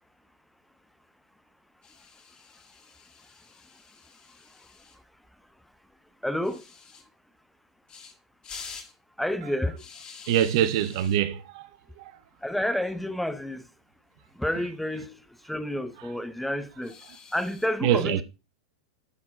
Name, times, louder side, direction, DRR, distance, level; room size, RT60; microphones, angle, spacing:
sound 1, 1.8-5.0 6.4-7.0 7.9-8.1 8.4-8.9 9.8-11.2 12.4-12.6 12.9-13.0 13.3-13.4 14.7-15.2 16.8-17.7, left 6 dB, 25° left, 2.3 m, -47 dB
voice 1, 6.2-6.6 9.2-9.8 12.4-13.7 14.4-15.2 15.4-17.0 17.3-18.2, left 1 dB, ahead, 0.7 m, -29 dB
voice 2, 10.3-11.7 12.0-12.1 17.8-18.2, right 10 dB, 50° right, 0.8 m, -24 dB
12.5 x 4.5 x 4.2 m
figure-of-eight pair, 95°, 3 cm